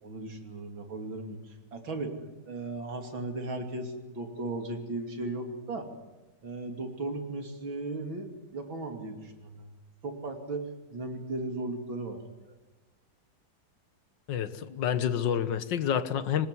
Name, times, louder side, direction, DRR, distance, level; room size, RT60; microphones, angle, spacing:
voice 1, 0.0-2.1 2.5-5.9 6.4-9.7 10.0-12.6, right 2 dB, 80° right, 5 dB, 3.7 m, -36 dB
voice 2, 14.3-16.5, left 9 dB, 65° left, 13 dB, 1.8 m, -28 dB
25.0 x 19.5 x 9.8 m, 1.1 s
omnidirectional pair, 2.1 m